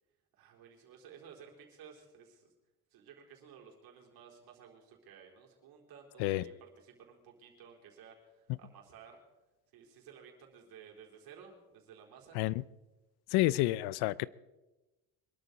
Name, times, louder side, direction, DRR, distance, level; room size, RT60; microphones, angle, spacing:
voice 1, 0.4-2.5 2.9-9.2 9.7-12.4, right 7 dB, 70° right, 4.2 m, -55 dB
voice 2, 13.3-14.3, left 17 dB, 85° left, 0.6 m, -29 dB
24.0 x 13.0 x 4.1 m
cardioid pair, 125°, 37 cm